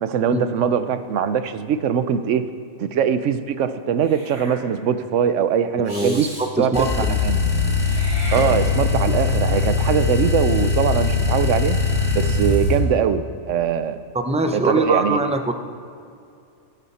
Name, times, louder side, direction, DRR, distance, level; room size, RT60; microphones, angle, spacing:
voice 1, 0.0-2.5 2.8-6.3 6.6-7.4 8.3-11.8 12.1-14.0 14.5-15.2, right 8 dB, 70° right, 12 dB, 1.0 m, -22 dB
Meow / Hiss, 4.0-4.6 5.8-6.5 7.8-9.0, right 1 dB, 55° right, 4.6 m, -33 dB
voice 2, 5.9-6.3 6.6-7.2 14.2-15.5, right 2 dB, 10° right, 6 dB, 0.4 m, -22 dB
sound 1, 6.7-12.8, left 4 dB, 25° left, 2.1 m, -21 dB
18.0 x 10.5 x 4.2 m, 2.5 s
omnidirectional pair, 1.3 m